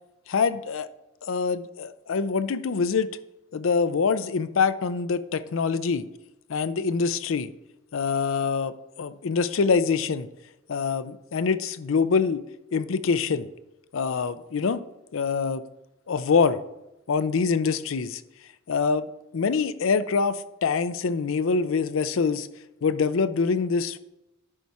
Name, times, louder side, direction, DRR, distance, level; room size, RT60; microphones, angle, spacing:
voice 1, 0.3-0.9 1.2-3.1 3.5-6.1 6.5-7.5 7.9-10.3 10.7-12.4 12.7-13.5 13.9-14.8 15.1-15.6 16.1-16.6 17.1-18.2 18.7-19.1 19.3-22.5 22.8-24.0, left 5 dB, 80° left, 14 dB, 0.5 m, -25 dB
11.0 x 4.7 x 4.2 m, 0.94 s
head